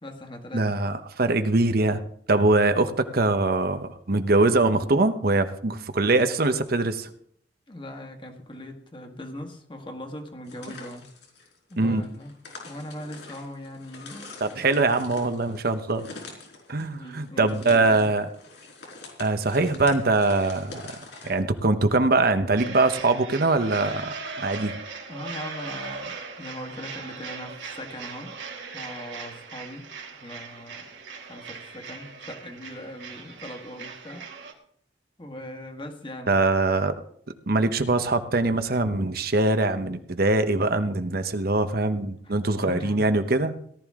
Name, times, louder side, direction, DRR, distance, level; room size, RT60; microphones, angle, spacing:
voice 1, 0.0-0.9 7.7-11.1 11.7-14.3 16.8-18.1 25.1-28.4 28.7-30.9 31.3-34.3 35.2-36.4 42.2-43.1, left 1 dB, 30° left, 4 dB, 1.8 m, -40 dB
voice 2, 0.5-2.0 2.3-7.1 11.8-12.0 14.4-16.0 16.7-18.3 19.2-20.9 21.2-24.8 36.3-36.9 37.5-43.5, right 2 dB, 55° right, 9 dB, 1.0 m, -23 dB
sound 1, 10.4-21.4, left 3 dB, 70° left, 4.8 m, -45 dB
sound 2, 22.6-34.5, right 4 dB, 85° right, 2.5 m, -39 dB
18.0 x 12.0 x 3.7 m, 0.63 s
head